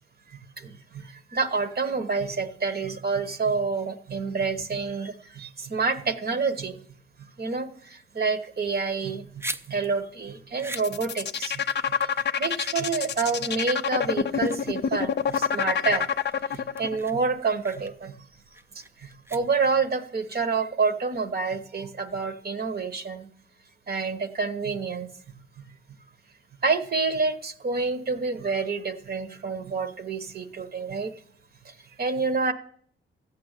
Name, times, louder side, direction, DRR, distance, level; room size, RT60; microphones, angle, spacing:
voice 1, 0.6-6.8 7.4-9.4 9.7-11.6 12.4-18.2 18.7-23.3 23.9-25.1 26.6-31.1 31.6-32.5, right 4 dB, 50° right, 10 dB, 1.1 m, -28 dB
sound 1, 9.1-19.9, right 2 dB, 10° right, 0.5 m, -43 dB
sound 2, 10.7-17.0, left 7 dB, 60° left, 0.6 m, -26 dB
13.5 x 8.7 x 6.6 m, 0.62 s
cardioid pair, 105°, 21 cm